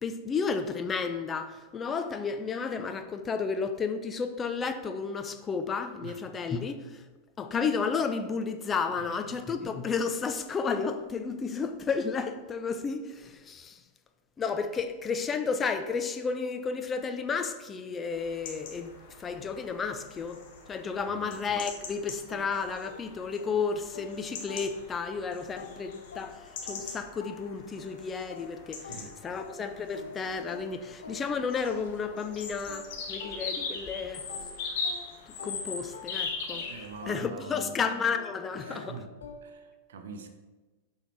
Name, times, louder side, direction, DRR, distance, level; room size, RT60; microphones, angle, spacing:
voice 1, 0.0-7.0 7.4-13.8 14.4-18.9 19.2-20.4 20.7-34.3 35.3-36.7 37.1-39.0, left 5 dB, 20° left, 0.6 m, -32 dB
sound 1, 18.1-37.2, left 4 dB, 55° left, 1.5 m, -41 dB
voice 2, 21.0-21.3 28.7-29.1 36.7-37.7 38.6-39.2 39.4-40.3, right 5 dB, 65° right, 1.0 m, -44 dB
sound 2, 22.3-25.2 25.6-33.9 34.3-39.7, left 4 dB, 75° left, 0.8 m, -48 dB
7.0 x 5.7 x 4.7 m
figure-of-eight pair, 95°, 0 cm